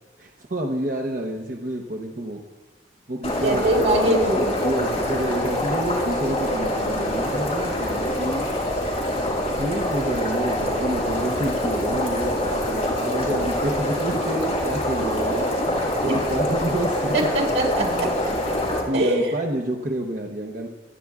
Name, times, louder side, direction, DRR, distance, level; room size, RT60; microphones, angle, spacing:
voice 1, 0.2-2.4 3.1-4.0 4.4-8.9 9.5-17.2 17.8-18.2 18.9-20.7, right 1 dB, 50° right, 1 dB, 0.9 m, -29 dB
sound 1, 3.2-18.8, left 1 dB, 35° left, 4.3 m, -25 dB
voice 2, 3.4-4.5 16.0-16.2 17.1-18.1 18.9-19.3, right 1 dB, 75° right, -2 dB, 4.6 m, -22 dB
26.5 x 11.0 x 2.4 m, 1.3 s
head